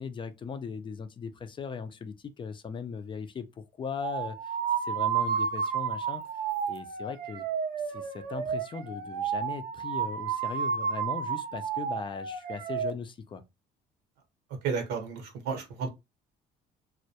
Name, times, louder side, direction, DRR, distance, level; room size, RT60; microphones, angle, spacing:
voice 1, 0.0-6.2 6.7-7.5 7.8-13.4, left 6 dB, 30° left, 0.3 m, -38 dB
sound 1, 4.0-12.9, right 7 dB, 60° right, 0.5 m, -31 dB
voice 2, 14.6-15.9, right 5 dB, 90° right, 0.9 m, -32 dB
2.2 x 2.0 x 2.7 m
cardioid pair, 110°, 17 cm